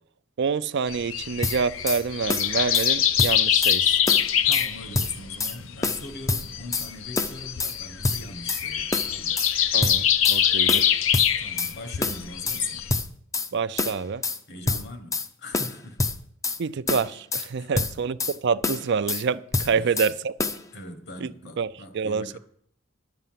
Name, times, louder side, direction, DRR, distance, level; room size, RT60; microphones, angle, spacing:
voice 1, 0.4-4.0 9.7-11.0 13.5-14.2 16.6-20.4 21.2-21.3 21.6-22.4, right 5 dB, 60° right, 0.4 m, -27 dB
sound 1, 0.9-13.0, left 9 dB, 75° left, 0.7 m, -24 dB
sound 2, 1.4-2.0 2.3-2.9 3.2-3.8 4.1-4.7 4.9-5.6 5.8-6.9 7.2-7.8 8.0-8.6 8.9-9.5 9.8-10.4 10.7-11.7 12.0-12.6 12.9-13.5 13.8-14.4 14.7-15.3 15.5-16.6 16.9-17.5 17.8-18.4 18.6-19.2 19.5-20.1 20.4-20.6, left 3 dB, 15° left, 0.5 m, -27 dB
voice 2, 4.5-9.4 11.4-12.9 14.5-16.0 17.6-17.9 19.7-19.9 20.7-22.4, left 3 dB, 60° left, 1.5 m, -39 dB
11.5 x 6.8 x 7.5 m
head